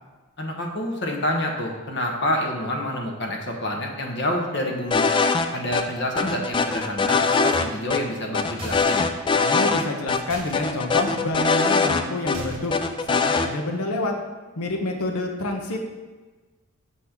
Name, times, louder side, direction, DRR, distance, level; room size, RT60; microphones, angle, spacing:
voice 1, 0.4-5.1 5.5-9.1, left 1 dB, 50° left, 1 dB, 1.0 m, -27 dB
sound 1, 4.9-5.5 5.7-5.8 6.2-7.7 7.9-8.0 8.3-9.8 10.1-10.2 10.5-12.4 12.7-13.5, left 4 dB, 20° left, 0.3 m, -22 dB
sound 2, 8.6-9.1 10.3-10.6 12.3-12.8, right 1 dB, 25° right, 1.1 m, -37 dB
voice 2, 9.3-12.7 13.1-14.1 14.6-15.8, left 2 dB, 80° left, 2 dB, 1.0 m, -27 dB
6.5 x 4.1 x 5.8 m, 1.3 s
head